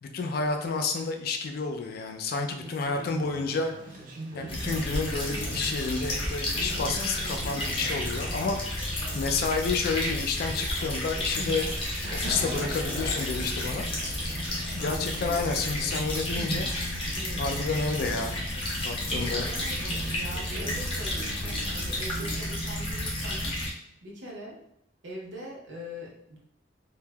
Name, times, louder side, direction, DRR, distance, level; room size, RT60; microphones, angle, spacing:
voice 1, 0.0-3.7 4.3-11.7 12.1-13.9 14.8-17.1 17.4-18.3 18.8-19.5, left 4 dB, 55° left, 5 dB, 0.3 m, -30 dB
voice 2, 2.6-3.3 9.1-9.3 14.8-15.4 15.8-15.9 19.2-19.8 20.1-23.5 24.0-24.6 25.0-26.4, equal, 80° right, -4 dB, 0.7 m, -42 dB
Conversation, 2.8-22.5, right 1 dB, 50° right, 0.4 m, -42 dB
sound 1, 4.5-23.7, left 1 dB, 30° left, 0.7 m, -32 dB
3.1 x 2.0 x 2.2 m, 0.73 s
head